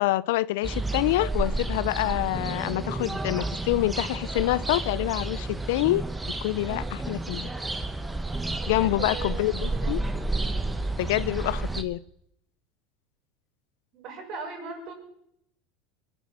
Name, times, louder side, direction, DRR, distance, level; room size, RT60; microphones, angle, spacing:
voice 1, 0.0-6.0 6.4-7.5 8.7-10.0 11.0-12.0, left 17 dB, 80° left, 20 dB, 0.6 m, -26 dB
sound 1, 0.6-11.8, right 2 dB, 10° right, 1.4 m, -31 dB
voice 2, 6.5-6.8 8.6-10.1 13.9-14.9, right 4 dB, 50° right, 2 dB, 6.4 m, -40 dB
23.0 x 8.1 x 7.4 m, 0.73 s
supercardioid pair, 125°, 0 cm